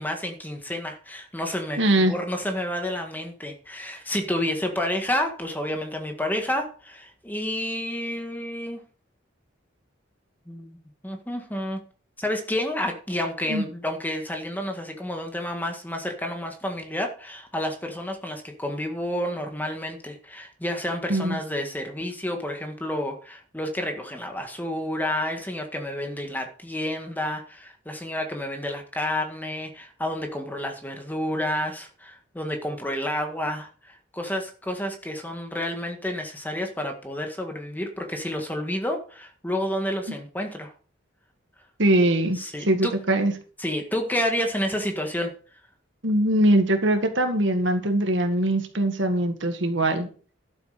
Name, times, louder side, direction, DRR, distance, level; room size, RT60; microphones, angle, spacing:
voice 1, 0.0-8.8 10.5-10.8 11.0-11.8 12.2-40.7 42.3-43.0 43.6-45.3, left 1 dB, 10° left, 4 dB, 1.8 m, -30 dB
voice 2, 1.8-2.1 13.5-13.6 21.1-21.4 41.8-42.4 42.7-43.3 46.0-50.1, right 1 dB, 70° right, 6 dB, 1.9 m, -22 dB
12.0 x 7.7 x 5.2 m, 0.40 s
head